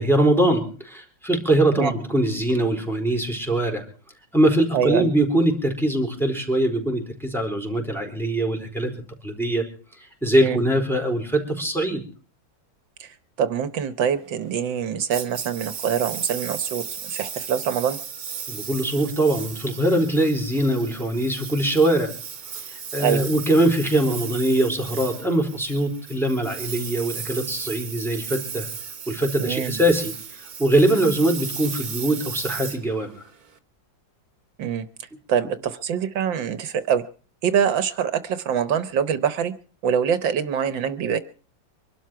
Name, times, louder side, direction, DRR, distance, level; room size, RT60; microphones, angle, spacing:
voice 1, 0.0-3.8 4.3-8.9 9.2-9.7 10.2-12.0 18.5-22.1 22.9-28.7 29.1-30.1 30.6-33.2, right 1 dB, ahead, 1 dB, 4.2 m, -22 dB
voice 2, 4.7-5.1 10.4-10.6 13.0-18.0 23.0-23.2 29.4-29.8 34.6-34.9 35.3-37.0 37.4-39.5 39.8-41.2, right 8 dB, 75° right, 13 dB, 1.7 m, -24 dB
Engine, 15.1-33.6, right 7 dB, 50° right, 1.8 m, -35 dB
24.5 x 12.5 x 4.6 m, 0.39 s
omnidirectional pair, 2.1 m